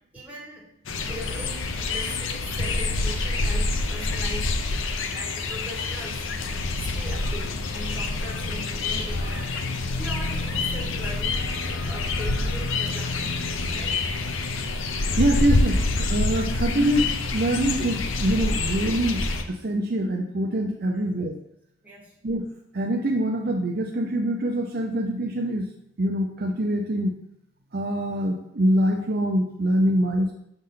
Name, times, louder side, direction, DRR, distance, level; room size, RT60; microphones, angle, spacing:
voice 1, 0.1-0.7 1.1-4.6 5.1-6.3 6.8-9.6 10.0-13.4 13.7-14.0 16.7-16.9 20.9-21.1 21.8-22.1, equal, 10° right, -4 dB, 1.8 m, -40 dB
sound 1, 0.9-19.4, left 3 dB, 85° left, 0.6 m, -27 dB
voice 2, 15.2-21.4 22.2-22.5 22.7-25.7 26.0-27.1 27.7-30.3, right 1 dB, 50° right, 2 dB, 0.6 m, -24 dB
6.5 x 3.5 x 5.6 m, 0.76 s
head